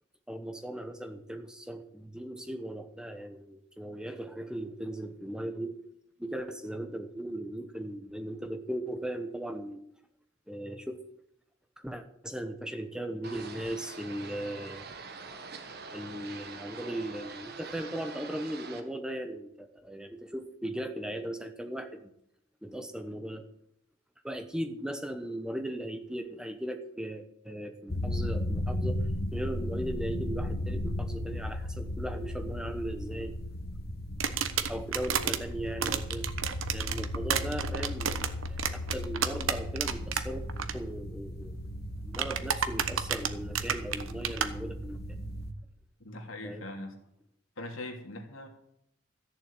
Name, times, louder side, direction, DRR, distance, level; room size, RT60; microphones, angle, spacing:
voice 1, 0.3-5.8 6.2-9.8 10.5-11.0 11.8-14.8 15.9-22.1 22.6-23.5 24.2-29.0 29.3-33.4 34.7-36.3 36.7-40.4 40.7-41.5 42.0-45.0 46.4-46.7, right 1 dB, 5° right, 7 dB, 0.9 m, -38 dB
sound 1, 13.2-18.8, right 4 dB, 50° right, 1.6 m, -44 dB
sound 2, 27.9-45.5, left 1 dB, 50° left, 1.2 m, -36 dB
sound 3, 34.2-35.4 35.8-40.2 40.5-40.7 42.1-44.5, right 8 dB, 75° right, 1.1 m, -30 dB
voice 2, 46.0-46.9 47.6-48.5, left 1 dB, 80° left, 3 dB, 2.8 m, -41 dB
14.0 x 7.1 x 8.9 m, 0.77 s
head